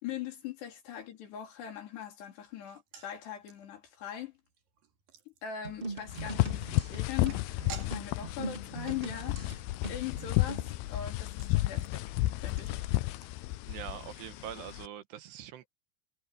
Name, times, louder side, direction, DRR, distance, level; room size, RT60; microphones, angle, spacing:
voice 1, 0.0-4.3 5.3-9.6 9.9-12.1 12.4-12.8, left 10 dB, 70° left, 5.5 m, -41 dB
sound 1, 2.7-13.9 14.1-14.2 14.5-14.7, right 8 dB, 55° right, 3.8 m, -54 dB
sound 2, 5.6-10.7, right 4 dB, 15° right, 1.9 m, -42 dB
sound 3, 6.1-14.9, left 18 dB, 85° left, 2.2 m, -32 dB
voice 2, 13.7-15.7, right 11 dB, 75° right, 3.3 m, -43 dB
omnidirectional pair, 5.1 m